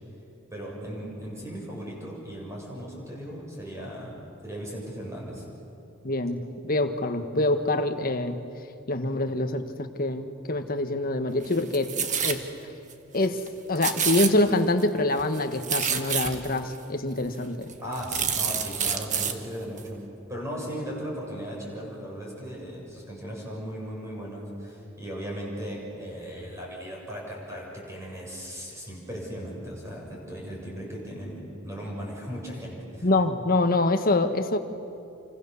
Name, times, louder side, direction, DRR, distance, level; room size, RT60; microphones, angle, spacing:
voice 1, 0.5-4.2 4.4-5.4 17.8-20.0 20.3-33.1, equal, 15° right, -3 dB, 7.2 m, -37 dB
voice 2, 6.0-8.4 8.9-12.5 13.1-13.4 13.7-17.7 33.0-34.6, left 2 dB, 45° left, 7 dB, 1.4 m, -25 dB
sound 1, 11.4-12.4 12.9-13.0 13.2-13.5 13.7-14.8 15.2-16.6 17.2-17.3 17.7-19.3 19.8-19.9, right 7 dB, 35° right, 1.5 m, -28 dB
28.5 x 25.5 x 7.0 m, 2.8 s
head